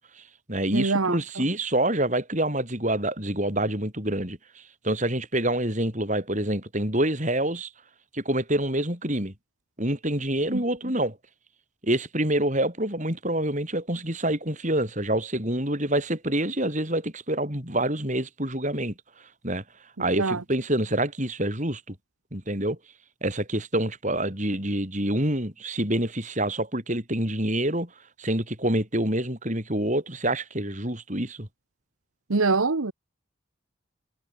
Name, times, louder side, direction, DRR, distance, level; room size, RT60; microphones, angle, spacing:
voice 1, 0.2-7.7 8.1-9.3 9.8-11.2 11.8-18.9 19.4-19.6 20.0-21.9 22.3-22.8 23.2-27.9 28.2-31.5, right 1 dB, 35° right, 6.6 m, -27 dB
voice 2, 0.7-1.4 10.5-10.6 20.0-20.4 32.3-32.9, right 3 dB, 85° right, 1.1 m, -25 dB
head